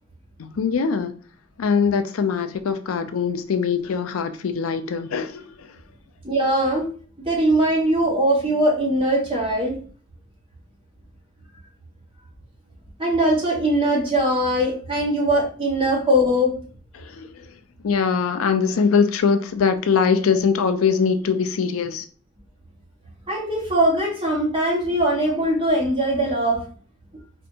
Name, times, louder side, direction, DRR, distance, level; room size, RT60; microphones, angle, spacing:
voice 1, 0.4-1.1 1.6-5.7 16.9-17.5 17.8-22.0, left 6 dB, 90° left, 0.4 m, -22 dB
voice 2, 6.2-6.9 7.2-9.8 13.0-16.5 23.3-26.6, right 1 dB, 25° right, 1.4 m, -21 dB
4.3 x 2.6 x 2.7 m
head